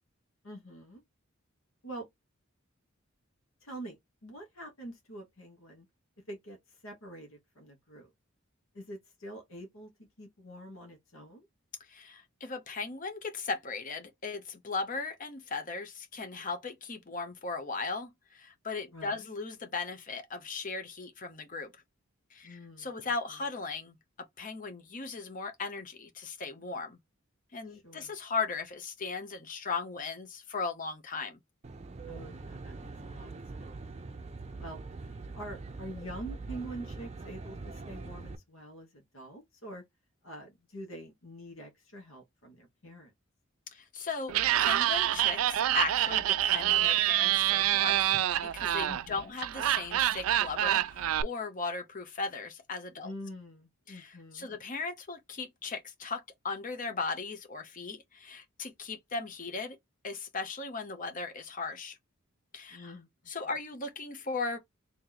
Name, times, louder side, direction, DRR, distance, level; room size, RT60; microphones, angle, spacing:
voice 1, 0.4-1.0 1.8-2.1 3.6-5.9 6.3-8.1 8.7-9.9 10.2-11.5 18.9-19.3 22.4-22.9 27.7-28.1 32.1-33.8 34.5-34.8 35.1-39.8 40.2-43.1 48.8-49.3 53.0-54.5 62.7-63.1 63.5-63.6, right 1 dB, 75° left, 1.4 m, -46 dB
voice 2, 11.9-21.7 22.3-24.0 24.4-27.0 27.5-31.4 43.7-48.1 48.4-53.1 53.9-59.8 60.0-62.0 62.5-62.9 63.3-64.6, left 4 dB, 40° left, 0.8 m, -37 dB
Aircraft, 31.6-38.4, right 3 dB, 30° right, 0.5 m, -43 dB
Laughter, 44.3-51.2, right 13 dB, 90° right, 0.3 m, -27 dB
3.1 x 2.8 x 3.9 m
head